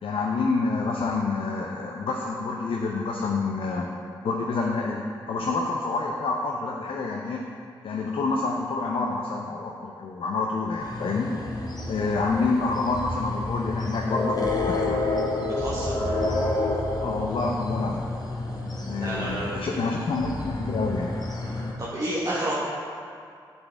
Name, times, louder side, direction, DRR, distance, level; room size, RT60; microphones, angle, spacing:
voice 1, 0.0-3.9 4.2-7.4 7.8-11.3 11.9-14.4 14.7-15.0 17.0-18.0 18.9-21.1, left 3 dB, 65° left, -1 dB, 0.5 m, -27 dB
sound 1, 10.8-21.7, left 2 dB, 40° left, 1.1 m, -29 dB
voice 2, 15.6-15.9 19.0-19.7 21.8-22.5, right 1 dB, 35° right, -7 dB, 1.0 m, -30 dB
7.9 x 4.2 x 3.3 m, 2.3 s
supercardioid pair, 45°, 10 cm